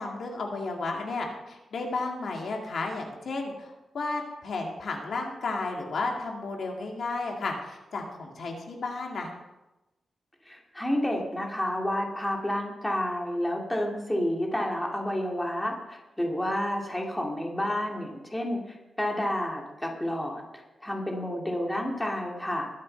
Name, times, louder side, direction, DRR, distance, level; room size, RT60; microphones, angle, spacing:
voice 1, 0.0-9.3, left 3 dB, 65° left, 1 dB, 2.2 m, -33 dB
voice 2, 10.5-22.7, left 1 dB, 10° left, 0 dB, 2.3 m, -30 dB
21.0 x 7.5 x 4.5 m, 1.0 s
wide cardioid pair, 120°, 0 cm